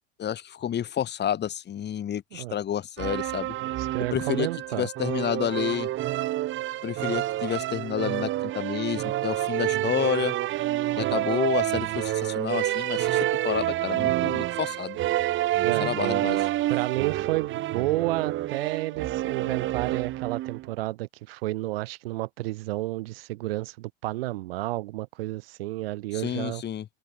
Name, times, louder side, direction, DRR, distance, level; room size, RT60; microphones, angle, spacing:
voice 1, 0.2-3.5 4.1-5.9 6.8-10.3 11.0-15.0 15.8-16.5 26.1-26.9, left 10 dB, 35° left, 4.9 m, -30 dB
sound 1, 3.0-20.7, right 15 dB, 40° right, 1.4 m, -28 dB
voice 2, 3.6-4.9 15.6-15.9 16.7-26.6, right 18 dB, 65° right, 5.6 m, -31 dB
hypercardioid pair, 85°, 31 cm